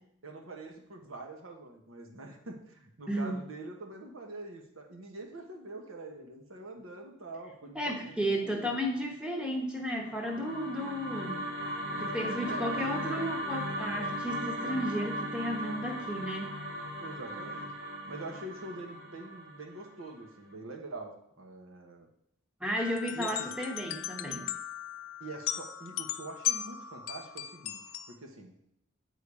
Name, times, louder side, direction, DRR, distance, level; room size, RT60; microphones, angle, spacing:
voice 1, 0.2-8.8 12.1-13.2 17.0-17.7 18.0-22.1 23.0-23.5 25.2-28.7, right 2 dB, 85° right, 3 dB, 1.2 m, -45 dB
voice 2, 3.1-3.4 7.7-11.4 11.9-16.5 22.6-24.5, equal, 5° right, 1 dB, 1.0 m, -33 dB
sound 1, 9.9-20.2, equal, 50° right, 1.4 m, -37 dB
sound 2, 22.8-28.1, left 11 dB, 75° left, 0.4 m, -37 dB
8.4 x 3.8 x 4.8 m, 0.74 s
head